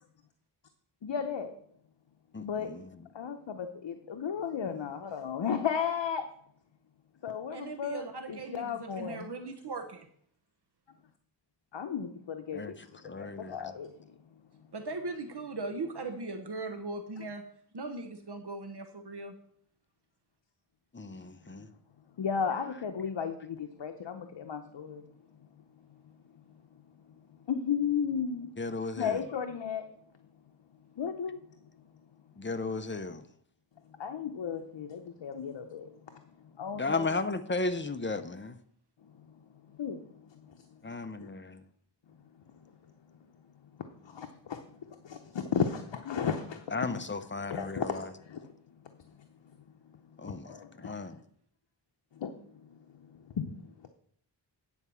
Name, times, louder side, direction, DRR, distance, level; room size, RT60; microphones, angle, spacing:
voice 1, 1.0-1.5 2.4-2.7 3.1-6.3 7.2-9.3 11.7-14.1 22.2-25.0 27.5-28.5 28.9-29.8 31.0-31.4 33.9-37.1 39.1-40.9 42.5-42.7 43.9-46.8 47.4-48.5 48.8-49.3 50.2-50.9 52.1-53.9, left 7 dB, 75° left, 6 dB, 0.8 m, -35 dB
voice 2, 2.3-2.9 12.5-12.7 13.0-13.7 20.9-21.7 28.6-29.2 32.4-33.3 36.8-38.6 40.8-41.4 46.7-48.1 50.2-50.5 50.8-51.1, left 3 dB, 25° left, 10 dB, 0.7 m, -35 dB
voice 3, 7.5-10.1 14.7-17.4 17.7-19.4, right 3 dB, 60° right, 6 dB, 1.0 m, -39 dB
9.4 x 4.7 x 6.9 m, 0.64 s
wide cardioid pair, 70°, 44 cm